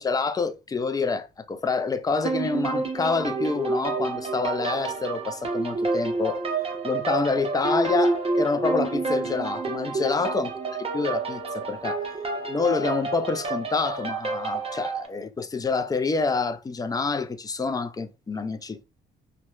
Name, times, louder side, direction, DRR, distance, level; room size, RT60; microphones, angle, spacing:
voice 1, 0.0-6.4 6.8-10.5 10.9-12.0 12.5-18.8, left 4 dB, 20° left, 0.3 m, -27 dB
sound 1, 2.2-15.1, right 3 dB, 30° right, 0.7 m, -29 dB
2.8 x 2.1 x 2.3 m
cardioid pair, 90°, 20 cm